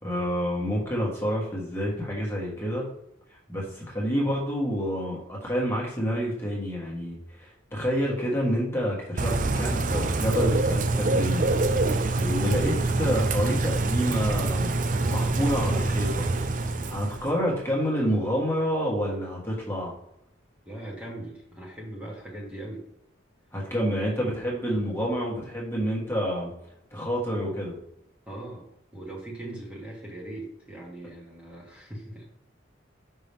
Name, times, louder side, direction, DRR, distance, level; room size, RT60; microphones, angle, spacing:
voice 1, 0.0-2.8 3.5-11.4 12.2-14.8 15.1-16.3 16.9-19.9 23.5-26.5 26.9-27.7, equal, 15° left, -4 dB, 1.4 m, -28 dB
Bird / Rain, 9.2-17.3, right 2 dB, 45° right, 0.5 m, -25 dB
voice 2, 12.1-12.4 20.6-22.8 27.3-27.5 28.3-28.6 28.9-32.2, right 1 dB, 5° right, -4 dB, 1.4 m, -40 dB
5.9 x 5.5 x 3.5 m, 0.78 s
head